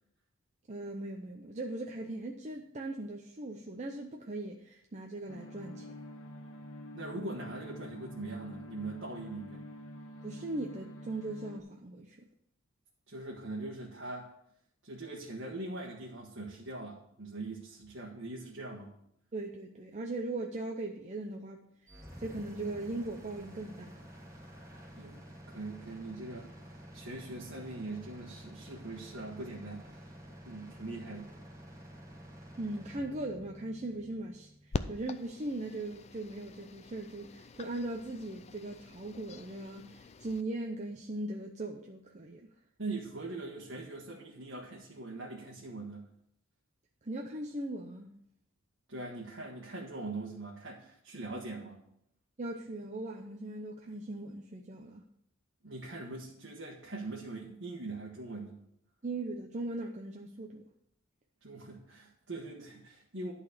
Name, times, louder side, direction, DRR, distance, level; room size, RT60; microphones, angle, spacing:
voice 1, 0.7-5.9 10.2-12.2 19.3-21.7 22.2-24.0 32.6-42.4 47.0-48.1 52.4-55.0 59.0-60.6, right 2 dB, 35° right, 2 dB, 0.7 m, -39 dB
sound 1, 5.3-11.6, equal, 80° left, 1.0 m, -47 dB
voice 2, 6.9-9.6 13.1-14.3 14.8-18.9 24.9-26.5 26.9-30.0 30.5-31.3 42.8-46.1 48.9-51.8 55.6-58.6 61.4-63.3, right 2 dB, 60° right, -3 dB, 1.5 m, -42 dB
sound 2, 21.9-35.8, equal, 15° right, 2.0 m, -51 dB
sound 3, 34.7-40.4, left 3 dB, 30° left, 0.4 m, -44 dB
11.5 x 4.1 x 6.7 m, 0.74 s
head